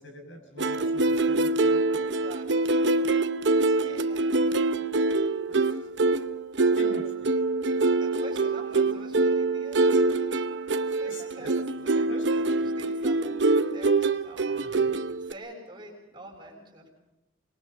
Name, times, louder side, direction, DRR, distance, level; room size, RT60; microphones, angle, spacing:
voice 1, 0.0-2.0 5.5-5.7 6.7-7.3 11.0-11.5 12.1-12.5 14.5-14.9, left 1 dB, 80° left, 4 dB, 6.6 m, -44 dB
sound 1, 0.6-15.3, right 3 dB, 65° right, 0.9 m, -25 dB
voice 2, 2.1-3.0 3.8-4.8 8.0-14.9 15.2-16.9, right 1 dB, 25° right, -1 dB, 6.8 m, -47 dB
26.0 x 22.0 x 5.5 m, 0.90 s
head